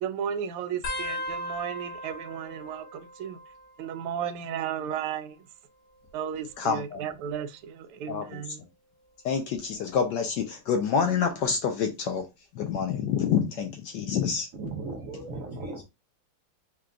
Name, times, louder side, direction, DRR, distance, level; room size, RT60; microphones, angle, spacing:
voice 1, 0.0-3.4 3.8-5.5 6.1-8.6, right 8 dB, 90° right, 1.5 m, -34 dB
sound 1, 0.8-4.0 4.3-4.9 5.9-7.4 8.0-8.3 9.5-9.9 11.4-11.5, left 1 dB, 50° left, 1.4 m, -39 dB
voice 2, 6.6-7.0 8.1-8.4 9.2-12.2 12.5-14.5, left 6 dB, 75° left, 1.0 m, -27 dB
voice 3, 14.5-15.8, right 3 dB, 70° right, 0.7 m, -36 dB
4.5 x 2.2 x 3.7 m
omnidirectional pair, 2.3 m